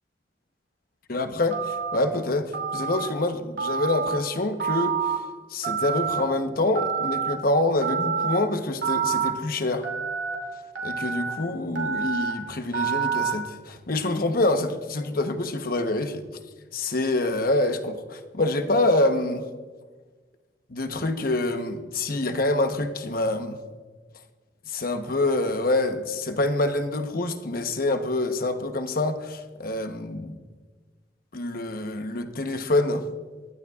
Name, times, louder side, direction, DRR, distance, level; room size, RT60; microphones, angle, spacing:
voice 1, 1.1-5.2 5.5-9.9 10.8-16.2 16.7-19.4 20.7-23.6 24.7-30.4 31.3-33.1, left 2 dB, 55° left, 1.0 m, -26 dB
Telephone, 1.5-2.0 2.5-3.1 3.6-4.2 4.6-5.2 5.6-6.2 6.7-7.3 7.8-8.4 8.8-9.3 9.8-10.3 10.7-11.3 11.7-12.3 12.7-13.3, right 7 dB, 85° right, 2.6 m, -27 dB
24.5 x 12.0 x 2.4 m
head